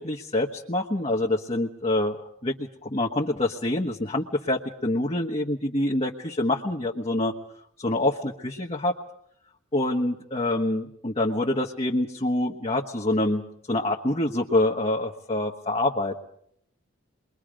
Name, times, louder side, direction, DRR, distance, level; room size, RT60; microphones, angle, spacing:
voice 1, 0.0-7.3 7.8-9.0 9.7-16.2, left 1 dB, 30° left, 0 dB, 1.3 m, -26 dB
29.0 x 22.5 x 5.1 m, 0.70 s
head